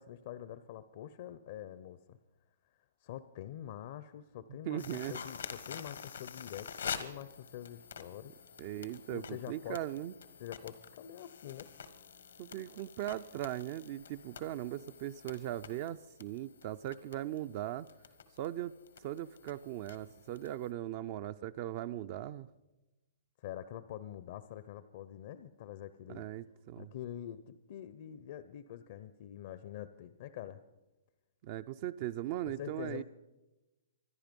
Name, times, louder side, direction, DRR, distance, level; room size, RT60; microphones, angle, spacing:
voice 1, 0.0-2.2 3.0-4.8 5.1-8.3 9.1-9.8 10.4-11.7 23.4-26.3 26.8-30.6 32.4-33.0, left 11 dB, 55° left, 13 dB, 0.7 m, -45 dB
voice 2, 4.7-5.2 8.6-10.1 12.4-17.9 18.4-22.5 26.1-26.9 31.4-33.0, right 13 dB, 45° right, 11 dB, 0.4 m, -39 dB
sound 1, 4.8-20.7, left 7 dB, 80° left, 1.3 m, -48 dB
25.0 x 10.5 x 5.3 m, 1.1 s
hypercardioid pair, 135°, 0 cm